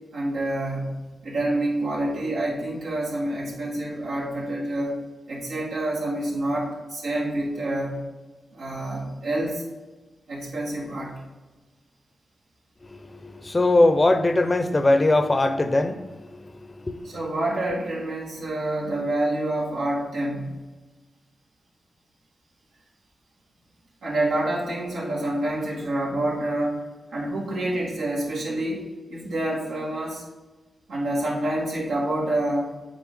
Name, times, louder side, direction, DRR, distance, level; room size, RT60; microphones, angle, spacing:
voice 1, 0.1-5.0 5.3-8.1 8.5-9.6 10.3-11.2 17.0-20.6 24.0-30.2 30.9-32.7, right 1 dB, 85° right, 1.9 m, -27 dB
voice 2, 12.9-16.2 16.6-17.1, left 2 dB, 35° left, 0.8 m, -21 dB
7.5 x 4.4 x 3.7 m
supercardioid pair, 45°, 0 cm